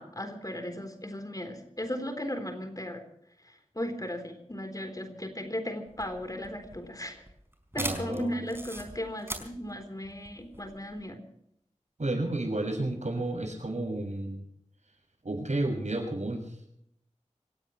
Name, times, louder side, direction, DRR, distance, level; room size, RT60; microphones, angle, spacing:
voice 1, 0.0-3.0 3.8-7.2 7.7-11.2, left 1 dB, 30° left, 6 dB, 3.8 m, -36 dB
sound 1, 5.9-11.0, right 1 dB, 20° right, 4.7 m, -40 dB
voice 2, 7.8-8.4 12.0-14.4 15.2-16.4, right 2 dB, 70° right, 3 dB, 6.3 m, -31 dB
26.5 x 16.5 x 3.2 m, 0.74 s
wide cardioid pair, 55°, 13 cm